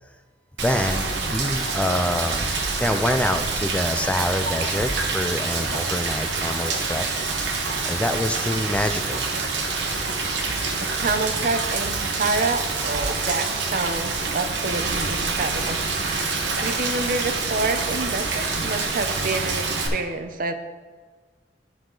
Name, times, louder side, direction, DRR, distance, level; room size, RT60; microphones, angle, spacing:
voice 1, 0.6-2.5 2.8-7.1 7.9-9.3, left 1 dB, 5° left, 7 dB, 0.3 m, -26 dB
Rain, 0.6-19.9, right 3 dB, 80° right, 1.1 m, -26 dB
voice 2, 11.0-20.5, right 3 dB, 50° right, 8 dB, 0.6 m, -28 dB
sound 1, 18.1-18.8, right 1 dB, 20° right, 1.6 m, -43 dB
12.5 x 4.8 x 3.8 m, 1.4 s
head